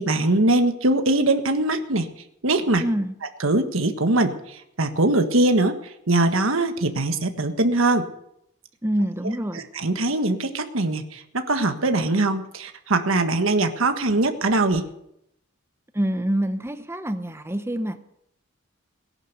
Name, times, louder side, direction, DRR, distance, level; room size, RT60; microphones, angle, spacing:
voice 1, 0.0-2.1 2.4-2.8 3.4-5.8 6.1-8.0 9.8-14.8, right 2 dB, 70° right, 7 dB, 1.5 m, -22 dB
voice 2, 2.8-3.2 8.8-9.7 15.9-18.0, right 1 dB, 10° right, 10 dB, 0.8 m, -26 dB
18.5 x 11.0 x 6.7 m, 0.77 s
head